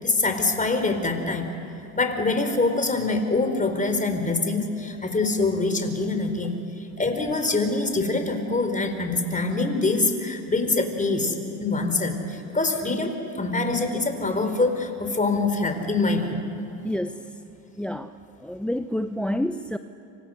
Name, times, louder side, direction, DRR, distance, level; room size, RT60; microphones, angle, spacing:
voice 1, 0.0-1.5 2.0-11.3 11.6-16.4, left 3 dB, 20° left, 6 dB, 4.2 m, -24 dB
voice 2, 16.8-17.4 17.8-18.1 18.4-19.8, left 1 dB, 5° left, 10 dB, 0.7 m, -29 dB
28.5 x 26.0 x 6.5 m, 2.8 s
supercardioid pair, 80°, 40 cm